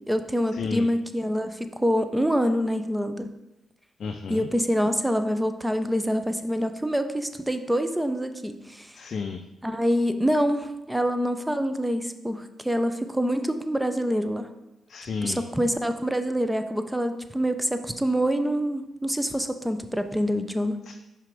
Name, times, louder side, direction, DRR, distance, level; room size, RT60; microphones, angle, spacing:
voice 1, 0.0-3.3 4.3-9.0 9.6-14.5 15.2-20.8, equal, 5° right, 8 dB, 0.6 m, -26 dB
voice 2, 0.5-0.9 4.0-4.5 8.9-9.4 14.9-15.4 20.9-21.0, left 5 dB, 60° left, 5 dB, 0.4 m, -32 dB
5.6 x 3.4 x 5.2 m, 0.98 s
supercardioid pair, 50°, 0 cm